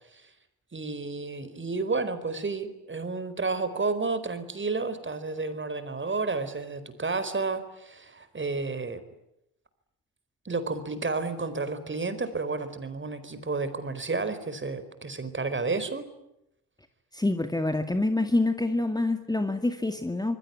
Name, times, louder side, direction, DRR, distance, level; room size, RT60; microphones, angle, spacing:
voice 1, 0.7-9.0 10.4-16.1, right 3 dB, 25° right, 12 dB, 4.5 m, -31 dB
voice 2, 17.1-20.4, left 2 dB, 10° left, 8 dB, 2.2 m, -26 dB
26.0 x 23.5 x 9.7 m, 0.84 s
figure-of-eight pair, 50°, 47 cm